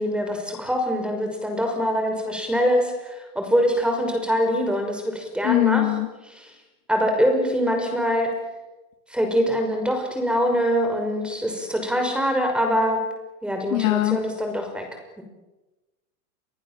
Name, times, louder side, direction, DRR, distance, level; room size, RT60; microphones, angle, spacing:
voice 1, 0.0-6.0 6.2-6.5 6.9-8.3 9.1-13.1 13.4-14.9 15.2-15.3, equal, ahead, 4 dB, 5.7 m, -24 dB
voice 2, 5.4-6.1 13.7-14.2, left 20 dB, 65° left, 8 dB, 2.8 m, -21 dB
30.0 x 24.5 x 7.6 m, 1.1 s
supercardioid pair, 150°, 43 cm